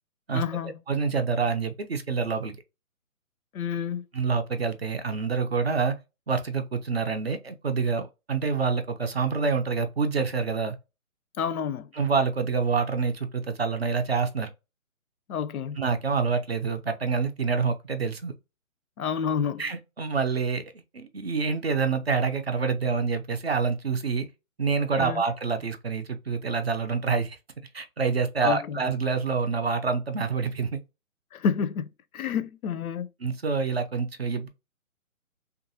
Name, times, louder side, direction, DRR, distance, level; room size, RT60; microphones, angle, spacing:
voice 1, 0.3-0.7 3.5-4.1 11.4-11.9 15.3-15.8 19.0-19.6 25.0-25.2 28.4-28.8 31.3-33.1, left 7 dB, 85° left, 0.6 m, -29 dB
voice 2, 0.9-2.6 4.1-6.0 6.3-10.8 12.0-14.5 15.8-18.3 19.6-20.6 20.9-24.3 24.6-27.4 27.7-30.8 33.2-34.5, right 5 dB, 50° right, 0.5 m, -27 dB
2.7 x 2.4 x 2.6 m
hypercardioid pair, 170°, 42 cm